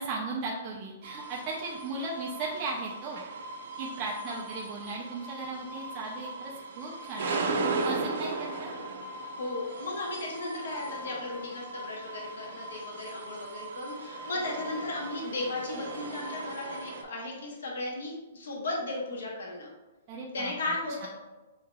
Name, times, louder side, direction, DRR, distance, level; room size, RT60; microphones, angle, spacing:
voice 1, 0.0-3.2 3.8-8.7 20.1-20.5 21.0-21.1, right 3 dB, 25° right, -4 dB, 0.4 m, -37 dB
sound 1, 1.0-17.0, right 3 dB, 65° right, 0.6 m, -37 dB
voice 2, 9.3-19.7 20.3-21.1, left 2 dB, 80° left, -2 dB, 1.1 m, -35 dB
6.3 x 2.8 x 2.3 m, 1.1 s
hypercardioid pair, 175°, 0 cm